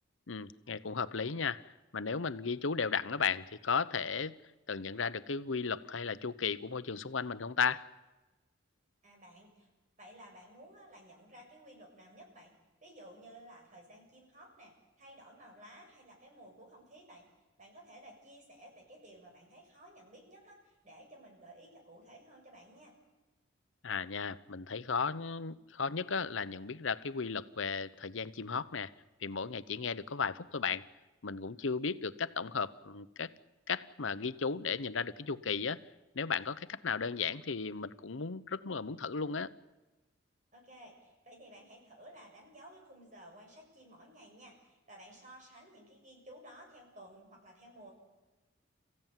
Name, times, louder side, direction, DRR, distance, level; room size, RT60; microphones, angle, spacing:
voice 1, 0.3-1.6 1.9-4.4 4.7-7.9 23.8-28.9 29.2-30.8 31.2-33.3 33.7-35.8 36.1-39.5, left 5 dB, 80° left, 15 dB, 0.9 m, -35 dB
voice 2, 9.0-9.7 10.0-12.5 12.8-17.2 17.6-22.9 40.5-47.9, right 1 dB, 40° right, 1 dB, 7.0 m, -55 dB
29.5 x 15.5 x 9.1 m, 1.1 s
head